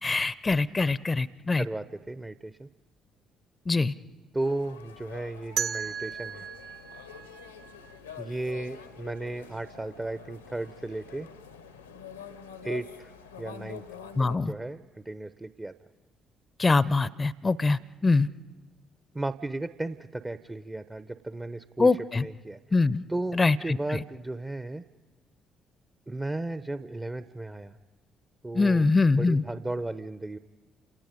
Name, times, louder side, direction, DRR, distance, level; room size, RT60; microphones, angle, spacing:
voice 1, 0.0-1.7 3.7-3.9 14.2-14.5 16.6-18.3 21.8-22.2 22.7-23.0 23.3-24.0 28.5-29.4, left 3 dB, 25° left, 19 dB, 0.7 m, -24 dB
voice 2, 1.6-2.7 4.3-6.5 8.2-11.3 12.6-13.1 13.4-13.8 14.2-15.7 19.1-22.6 23.1-24.8 26.1-27.8 28.4-28.8 29.2-30.4, right 2 dB, 20° right, 12 dB, 0.9 m, -35 dB
sound 1, 4.4-14.4, left 7 dB, 90° left, 1.3 m, -46 dB
sound 2, 5.6-8.4, right 8 dB, 65° right, 1.7 m, -35 dB
29.5 x 27.5 x 5.3 m, 1.2 s
figure-of-eight pair, 45°, 0 cm